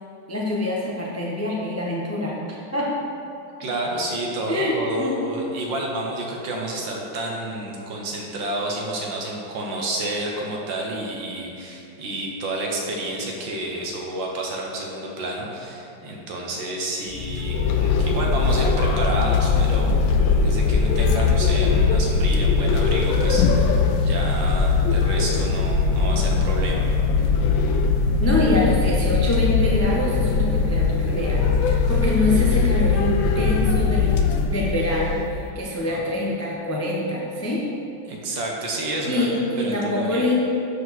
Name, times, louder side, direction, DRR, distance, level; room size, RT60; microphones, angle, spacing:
voice 1, 0.3-2.4 2.7-2.9 4.5-5.2 28.2-37.6 39.1-40.3, left 1 dB, 20° left, -4 dB, 0.4 m, -25 dB
voice 2, 3.6-20.0 20.4-26.9 27.2-27.4 35.8-36.0 38.0-40.3, right 1 dB, 70° right, -1 dB, 1.8 m, -30 dB
sound 1, 17.1-35.3, left 4 dB, 80° left, 1.3 m, -20 dB
12.0 x 4.7 x 4.2 m, 2.8 s
omnidirectional pair, 2.2 m